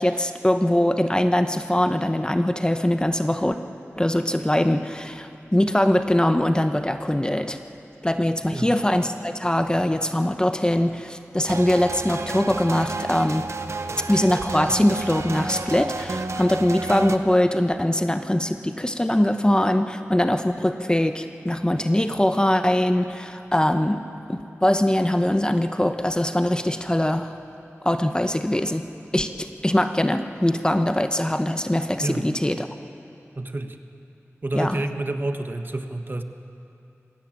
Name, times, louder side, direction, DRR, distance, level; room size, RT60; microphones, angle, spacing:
voice 1, 0.0-3.6 4.0-7.6 8.0-13.4 14.1-24.0 24.3-27.3 27.8-28.8 29.1-32.7 34.5-34.8, left 1 dB, 15° left, 8 dB, 0.9 m, -22 dB
sound 1, 11.5-17.2, right 3 dB, 65° right, 1.0 m, -31 dB
voice 2, 32.0-32.3 33.3-33.8 34.4-36.2, right 2 dB, 40° right, 7 dB, 1.3 m, -29 dB
20.5 x 17.0 x 9.0 m, 2.7 s
wide cardioid pair, 65°, 5 cm